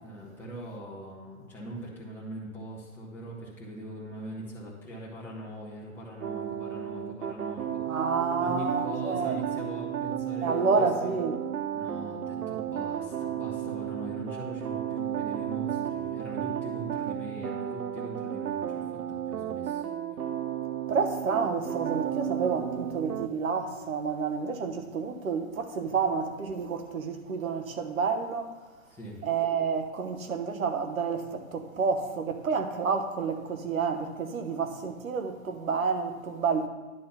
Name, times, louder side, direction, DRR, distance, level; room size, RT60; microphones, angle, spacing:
voice 1, 0.0-8.1 8.4-11.1 11.7-19.8 28.9-29.3, right 1 dB, 5° left, 1.3 m, -41 dB
sound 1, 6.2-23.3, right 10 dB, 90° right, 0.6 m, -33 dB
voice 2, 7.9-9.4 10.4-11.4 20.9-28.5 29.2-36.7, right 5 dB, 70° right, 1.2 m, -29 dB
10.5 x 3.8 x 5.7 m
hypercardioid pair, 135°, 42 cm